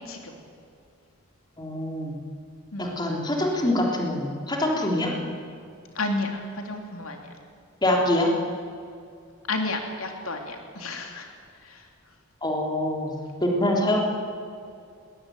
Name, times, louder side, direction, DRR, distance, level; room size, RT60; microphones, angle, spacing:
voice 1, 1.6-2.2 2.8-5.2 7.8-8.3 12.4-13.2 13.4-14.0, left 1 dB, 20° left, 0 dB, 3.7 m, -24 dB
voice 2, 6.0-7.2 9.5-11.3, left 2 dB, 80° left, 3 dB, 3.0 m, -31 dB
21.0 x 20.0 x 9.5 m, 2.4 s
head